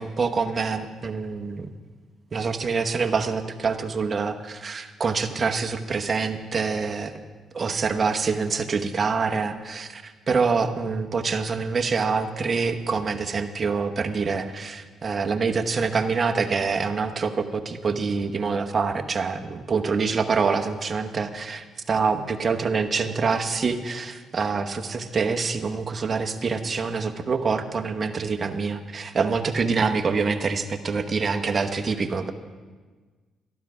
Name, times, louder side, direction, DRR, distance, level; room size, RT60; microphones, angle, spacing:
voice 1, 0.0-1.7 2.3-7.2 7.5-32.3, right 5 dB, 40° right, 6 dB, 1.0 m, -26 dB
13.5 x 11.5 x 4.9 m, 1.4 s
cardioid pair, 90°, 0 cm